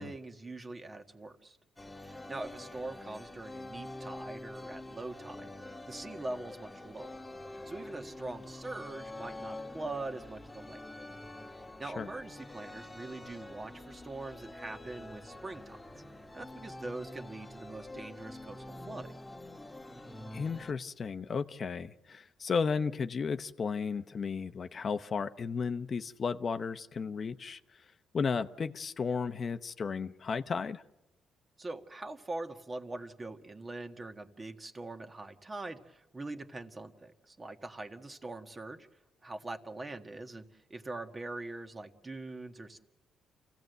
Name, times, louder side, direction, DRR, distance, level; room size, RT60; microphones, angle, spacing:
voice 1, 0.0-1.6 2.0-5.5 5.9-7.1 7.5-10.8 11.6-15.8 16.3-19.1 31.6-38.9 39.2-42.8, right 2 dB, 25° right, 1.7 m, -43 dB
sound 1, 1.8-20.7, left 1 dB, 10° left, 1.6 m, -46 dB
voice 2, 20.3-27.6 28.1-30.8, left 5 dB, 45° left, 0.9 m, -34 dB
27.5 x 16.0 x 8.1 m
cardioid pair, 90°, 0 cm